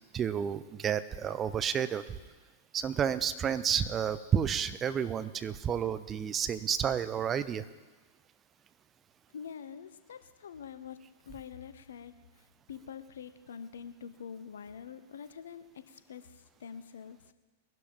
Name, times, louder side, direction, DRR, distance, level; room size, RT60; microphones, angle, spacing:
voice 1, 0.1-2.2 2.7-7.6, right 8 dB, 25° right, 14 dB, 0.6 m, -31 dB
voice 2, 9.3-17.2, left 7 dB, 65° left, 12 dB, 0.8 m, -46 dB
21.5 x 11.5 x 3.6 m, 1.3 s
figure-of-eight pair, 95°, 0 cm